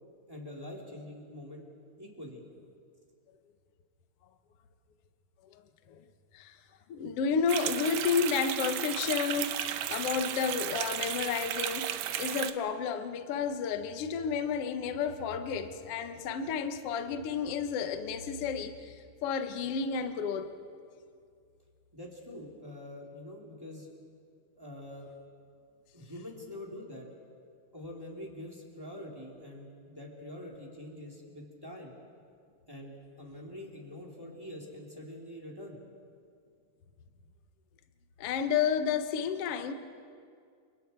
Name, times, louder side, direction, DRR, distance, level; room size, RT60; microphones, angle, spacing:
voice 1, 0.3-1.6 2.0-2.4 21.9-23.9 24.5-25.1 25.9-27.1 27.7-31.9 32.7-35.8, left 1 dB, 5° right, 3.0 m, -45 dB
voice 2, 6.9-20.5 38.2-39.7, left 6 dB, 80° left, 1.3 m, -31 dB
sound 1, 7.5-12.5, right 11 dB, 75° right, 2.1 m, -34 dB
30.0 x 28.0 x 4.6 m
omnidirectional pair, 4.5 m